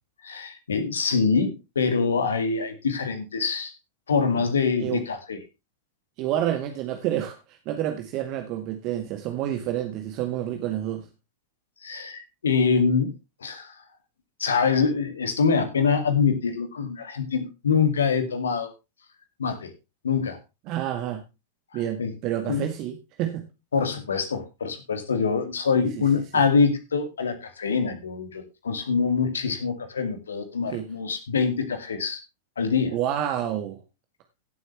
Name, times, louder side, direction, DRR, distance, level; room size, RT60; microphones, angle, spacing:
voice 1, 0.2-3.7 4.1-5.4 11.8-13.1 13.4-13.7 14.4-18.7 19.4-19.7 20.0-20.4 21.7-22.1 22.5-22.7 23.7-32.2 32.6-33.0, left 5 dB, 70° left, 8 dB, 2.3 m, -25 dB
voice 2, 6.2-11.0 20.7-21.2 21.7-23.4 25.8-26.1 26.3-26.4 30.7-30.9 32.9-33.8, right 11 dB, 40° right, 6 dB, 1.6 m, -29 dB
16.5 x 8.1 x 3.2 m, 0.26 s
figure-of-eight pair, 90°, 0 cm